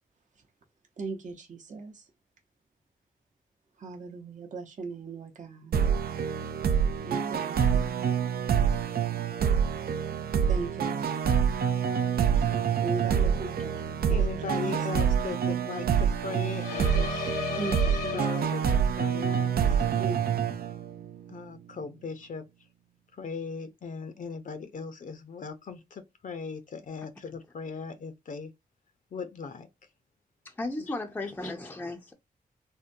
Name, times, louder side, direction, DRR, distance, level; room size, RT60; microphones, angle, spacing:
voice 1, 1.0-1.9 3.8-5.8 7.0-8.1 10.5-11.6 12.8-13.7 14.7-14.8 17.6-17.8 18.0-18.2 20.0-20.1, right 3 dB, 50° right, 0.8 m, -38 dB
sound 1, 5.7-21.2, right 7 dB, 75° right, 0.5 m, -26 dB
voice 2, 12.0-20.0 21.3-22.4 23.1-28.5 29.1-29.7 31.4-31.5, left 5 dB, 55° left, 0.6 m, -39 dB
sound 2, 16.6-18.9, left 6 dB, 90° left, 1.0 m, -35 dB
voice 3, 30.4-32.1, left 2 dB, 10° left, 0.5 m, -35 dB
3.6 x 2.2 x 2.6 m
wide cardioid pair, 130°, 16 cm